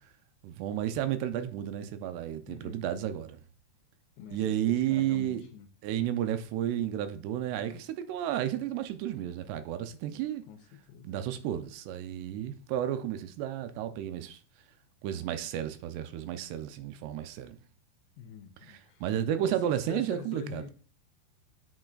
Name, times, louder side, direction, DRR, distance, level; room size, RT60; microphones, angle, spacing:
voice 1, 0.4-3.4 4.3-5.4 5.8-10.4 11.0-14.4 15.0-17.6 18.6-20.7, right 11 dB, 85° right, 2.7 m, -32 dB
voice 2, 2.5-3.1 4.2-5.7 10.5-10.6 10.9-11.2 18.2-19.0 19.5-20.7, left 9 dB, 80° left, 2.2 m, -45 dB
8.5 x 6.4 x 2.4 m
omnidirectional pair, 4.7 m